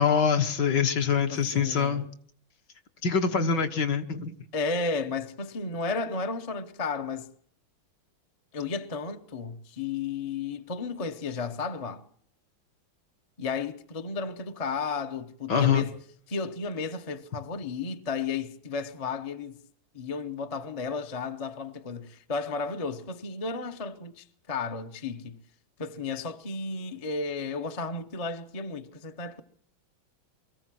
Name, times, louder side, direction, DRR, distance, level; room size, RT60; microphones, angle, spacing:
voice 1, 0.0-2.0 3.0-4.3 15.5-15.9, left 6 dB, 60° left, 1.9 m, -24 dB
voice 2, 1.3-2.1 4.5-7.3 8.5-12.1 13.4-15.9 16.3-19.6 19.9-25.4 25.8-29.4, left 4 dB, 30° left, 0.7 m, -33 dB
24.0 x 14.5 x 7.6 m
omnidirectional pair, 2.2 m